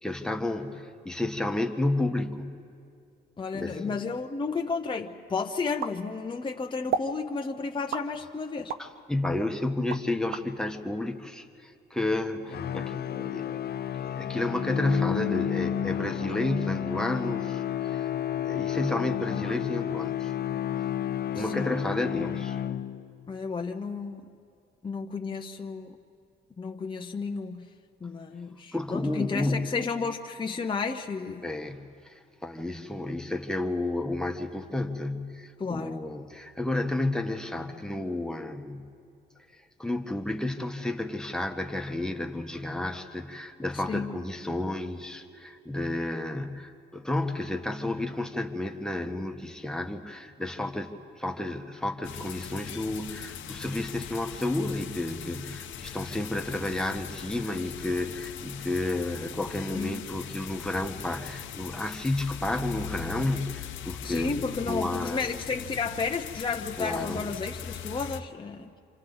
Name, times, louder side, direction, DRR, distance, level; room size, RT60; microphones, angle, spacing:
voice 1, 0.0-2.6 3.5-3.9 8.8-18.1 18.4-20.3 21.3-22.6 28.7-29.7 31.4-38.9 39.8-64.3 64.6-65.2 66.8-67.3, left 2 dB, 5° left, 4 dB, 1.4 m, -31 dB
voice 2, 3.4-8.7 21.3-21.7 23.3-24.2 24.8-26.0 26.6-27.7 28.0-31.4 35.6-36.0 43.7-44.1 59.7-60.0 64.0-68.7, left 4 dB, 25° left, 2 dB, 0.8 m, -32 dB
sound 1, 5.8-6.5 6.9-7.2 7.9-8.9 9.4-10.5, right 7 dB, 85° right, 0.8 m, -33 dB
sound 2, 12.5-23.2, left 10 dB, 55° left, 0.7 m, -31 dB
sound 3, 52.0-68.2, left 8 dB, 80° left, 1.0 m, -40 dB
28.0 x 26.0 x 4.0 m, 2.4 s
cardioid pair, 90°, 20 cm